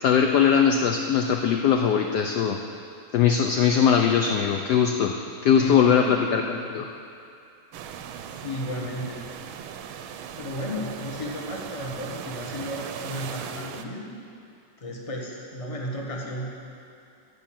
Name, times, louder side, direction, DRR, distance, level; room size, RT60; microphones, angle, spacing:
voice 1, 0.0-2.6 3.1-5.1 5.4-6.9, left 7 dB, 75° left, 3 dB, 0.9 m, -21 dB
voice 2, 5.6-6.3 8.3-9.3 10.4-14.1 14.8-16.5, equal, 20° left, -1 dB, 1.1 m, -33 dB
sound 1, 7.7-13.9, right 8 dB, 75° right, 1.4 m, -38 dB
13.5 x 5.4 x 8.7 m, 2.5 s
omnidirectional pair, 2.4 m